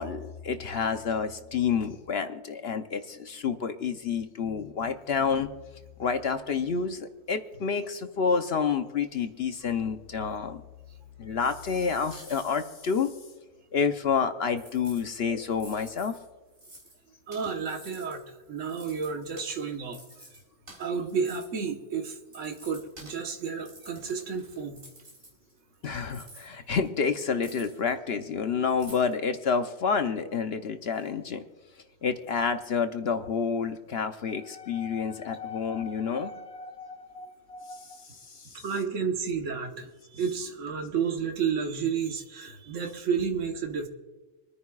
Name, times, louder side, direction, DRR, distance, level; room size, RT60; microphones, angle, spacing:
voice 1, 0.0-5.5 6.0-10.6 11.2-13.1 13.7-16.1 25.8-31.4 32.0-38.6, left 6 dB, 55° left, 8 dB, 0.9 m, -29 dB
sound 1, 11.9-12.6 13.0-13.1 14.5-15.0 15.5-17.0 17.3-18.2 18.6-21.7 22.2-23.2 23.5-25.7 26.0-27.9 28.2-28.3 28.7-29.1, right 1 dB, 45° right, 4.2 m, -51 dB
voice 2, 17.3-18.2 18.5-20.0 20.8-24.8 38.6-43.9, right 6 dB, 70° right, 4 dB, 1.5 m, -31 dB
27.0 x 9.8 x 2.3 m, 1.2 s
omnidirectional pair, 1.3 m